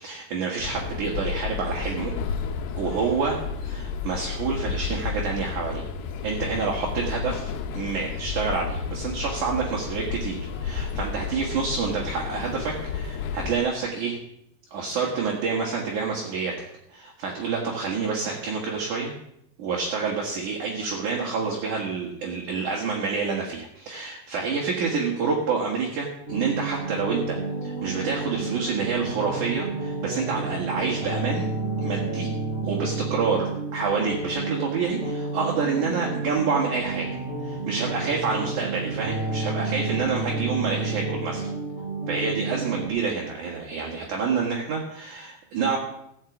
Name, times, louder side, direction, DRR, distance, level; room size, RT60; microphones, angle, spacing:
voice 1, 0.0-2.1 2.8-3.4 3.6-5.8 6.2-14.2 14.7-16.5 16.9-19.1 19.6-31.5 31.8-32.3 32.6-37.1 37.4-41.5 42.1-45.8, right 5 dB, 55° right, -2 dB, 2.9 m, -28 dB
sound 1, 0.6-13.6, left 6 dB, 90° left, 3.1 m, -32 dB
sound 2, 26.3-42.9, right 3 dB, 20° right, 3.8 m, -30 dB
15.0 x 6.6 x 8.1 m, 0.76 s
omnidirectional pair, 4.6 m